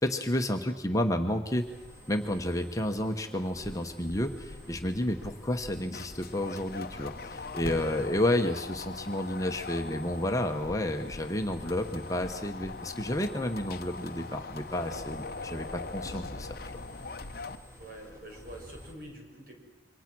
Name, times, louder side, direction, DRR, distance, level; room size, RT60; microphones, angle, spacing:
voice 1, 0.0-1.7 2.1-16.8, left 1 dB, 20° left, 4 dB, 1.1 m, -31 dB
sound 1, 1.5-18.9, left 1 dB, 15° right, 4.6 m, -49 dB
sound 2, 3.6-17.6, left 4 dB, 50° left, 0.8 m, -42 dB
voice 2, 17.8-19.5, right 1 dB, 50° right, 1 dB, 6.0 m, -46 dB
27.5 x 24.0 x 6.2 m, 1.1 s
head